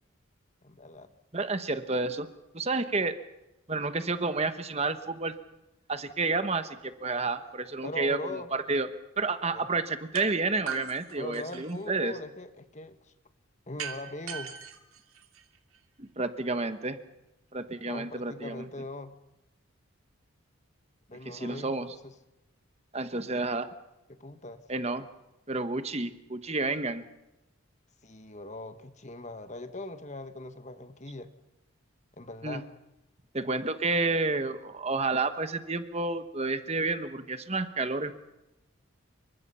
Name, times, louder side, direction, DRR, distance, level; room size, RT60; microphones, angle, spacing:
voice 1, 0.6-1.1 7.8-8.5 9.5-9.7 11.2-13.0 13.7-14.5 17.9-19.1 21.1-21.8 22.0-22.1 23.3-23.4 24.1-24.6 28.0-31.3 32.2-32.7, left 2 dB, 35° left, 9 dB, 1.4 m, -40 dB
voice 2, 1.3-2.3 2.5-3.2 3.7-5.3 5.9-8.9 9.2-12.1 16.0-17.0 17.5-18.6 21.2-22.0 22.9-23.7 24.7-25.1 25.5-27.0 32.4-32.6 33.3-38.1, right 3 dB, 30° right, 10 dB, 1.2 m, -30 dB
sound 1, 10.1-10.3 10.7-11.9 13.8-15.8, right 7 dB, 90° right, 2.9 m, -39 dB
28.0 x 24.0 x 5.6 m, 0.96 s
head